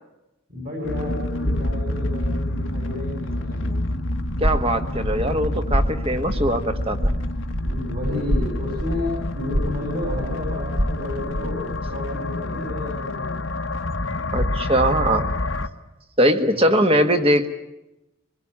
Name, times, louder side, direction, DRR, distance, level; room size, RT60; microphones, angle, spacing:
voice 1, 0.5-3.8 7.6-13.4 16.4-17.2, left 2 dB, 45° right, 1 dB, 6.1 m, -32 dB
sound 1, 0.8-15.7, left 1 dB, 75° left, 1.3 m, -28 dB
sound 2, 4.1-11.9, equal, 70° right, 3.4 m, -27 dB
voice 2, 4.4-7.1 14.3-15.3 16.2-17.5, right 1 dB, 30° right, 7 dB, 1.7 m, -21 dB
24.0 x 21.0 x 8.8 m, 0.94 s
head